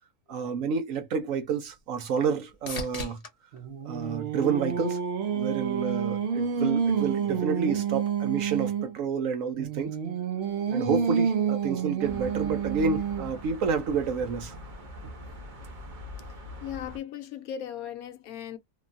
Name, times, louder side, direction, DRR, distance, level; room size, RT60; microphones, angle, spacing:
voice 1, 0.3-3.2 3.8-5.0 5.3-10.0 10.7-14.5, right 6 dB, 65° right, 0.9 m, -29 dB
sound 1, 0.9-5.1 5.7-6.3 14.1-14.2, left 2 dB, 35° left, 0.6 m, -43 dB
Singing, 3.5-9.0 9.6-13.4, right 7 dB, 90° right, 0.5 m, -29 dB
sound 2, 12.0-17.0, left 1 dB, 45° right, 0.7 m, -42 dB
voice 2, 16.6-18.6, left 10 dB, 70° left, 1.0 m, -37 dB
3.0 x 2.2 x 2.5 m
omnidirectional pair, 1.6 m